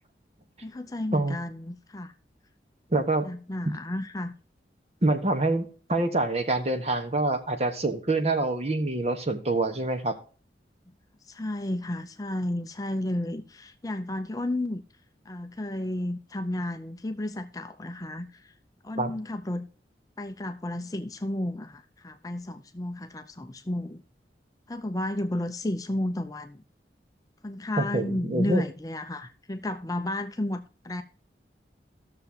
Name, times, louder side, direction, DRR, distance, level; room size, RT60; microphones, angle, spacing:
voice 1, 0.6-2.1 3.2-4.3 11.3-14.8 15.3-18.5 18.8-19.7 20.2-24.0 24.7-26.6 27.4-31.0, left 1 dB, 20° left, 0.5 m, -32 dB
voice 2, 2.9-3.3 3.6-3.7 5.0-10.2 19.0-19.1 27.8-28.6, right 2 dB, 35° right, 1.2 m, -26 dB
14.5 x 6.7 x 2.8 m
head